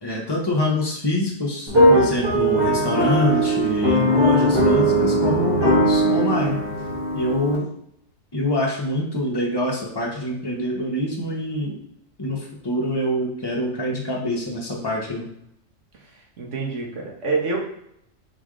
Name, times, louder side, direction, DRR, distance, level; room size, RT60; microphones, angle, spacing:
voice 1, 0.0-6.6 7.1-7.7 8.3-11.8 12.2-12.4 12.6-15.3, left 1 dB, 20° left, -2 dB, 0.9 m, -25 dB
sound 1, 1.7-7.6, right 1 dB, 20° right, 1.0 m, -19 dB
voice 2, 16.4-17.6, right 4 dB, 65° right, -2 dB, 1.4 m, -26 dB
4.0 x 3.4 x 3.7 m, 0.73 s
omnidirectional pair, 1.4 m